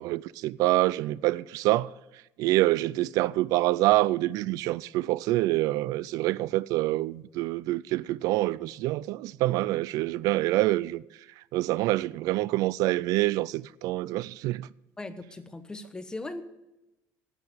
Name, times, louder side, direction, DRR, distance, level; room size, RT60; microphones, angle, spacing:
voice 1, 0.0-1.9 2.4-11.0 11.4-14.7, right 17 dB, 65° right, 0.3 m, -26 dB
voice 2, 15.0-16.4, left 2 dB, 10° left, 0.9 m, -38 dB
11.0 x 9.0 x 7.6 m
cardioid pair, 135°, 7 cm